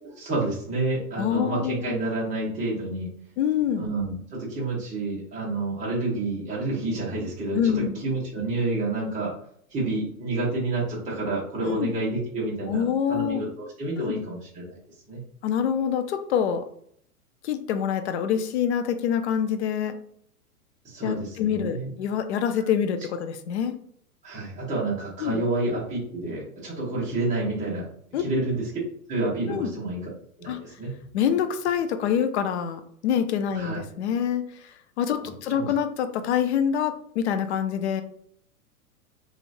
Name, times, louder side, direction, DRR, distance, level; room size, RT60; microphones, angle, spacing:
voice 1, 0.0-3.1 3.8-9.3 9.7-12.8 13.1-14.7 15.1-15.2 20.8-21.9 24.2-27.9 28.2-28.7 29.1-30.1 30.4-30.9 33.5-33.8 35.5-35.7, right 2 dB, 15° right, -6 dB, 1.0 m, -29 dB
voice 2, 1.2-2.0 3.4-3.9 7.5-8.0 11.6-11.9 12.7-13.4 14.0-14.2 15.4-16.6 17.4-20.0 21.0-23.7 25.2-25.4 28.1-28.2 29.5-29.7 30.5-30.6 31.1-38.0, left 8 dB, 50° left, 9 dB, 0.5 m, -26 dB
3.0 x 2.5 x 2.5 m, 0.65 s
hypercardioid pair, 110°, 45 cm